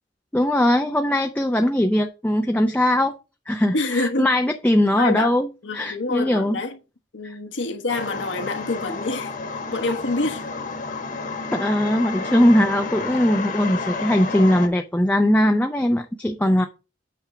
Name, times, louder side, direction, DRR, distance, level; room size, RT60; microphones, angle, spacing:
voice 1, 0.3-3.1 3.5-6.6 7.2-7.4 11.5-16.6, left 1 dB, 10° left, 0.5 m, -20 dB
voice 2, 3.7-4.3 5.0-5.4 5.6-6.8 7.1-9.3 9.7-10.4, left 3 dB, 80° left, 1.2 m, -26 dB
sound 1, 7.9-14.7, left 4 dB, 45° left, 1.2 m, -31 dB
8.9 x 3.5 x 5.6 m
head